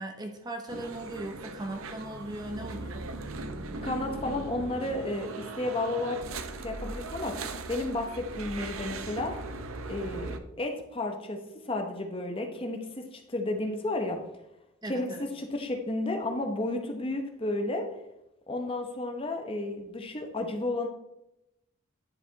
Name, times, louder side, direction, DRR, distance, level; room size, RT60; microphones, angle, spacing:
voice 1, 0.0-3.1 14.8-15.3, right 1 dB, 20° right, 4 dB, 0.7 m, -38 dB
sound 1, 0.7-10.4, right 3 dB, 75° right, 0.7 m, -39 dB
voice 2, 3.8-6.2 6.6-7.4 7.7-9.4 9.9-14.2 14.9-17.9 18.5-20.9, left 2 dB, 25° left, 4 dB, 0.9 m, -32 dB
9.9 x 4.9 x 4.0 m, 0.88 s
head